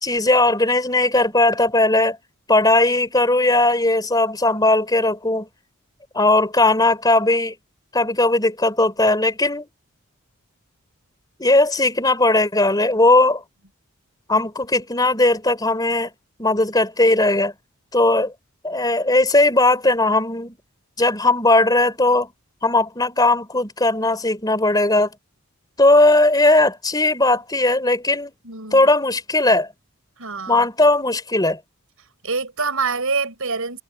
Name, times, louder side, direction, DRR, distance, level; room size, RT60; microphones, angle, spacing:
voice 1, 0.0-2.2 2.5-5.5 6.1-7.5 7.9-9.7 11.4-13.4 14.3-16.1 16.4-17.5 17.9-18.3 18.6-20.6 21.0-22.3 22.6-25.1 25.8-28.3 28.7-29.7 30.5-31.6, left 2 dB, 15° left, 3.8 m, -18 dB
voice 2, 28.4-28.9 30.2-30.6 32.2-33.8, right 4 dB, 70° right, 5.1 m, -25 dB
head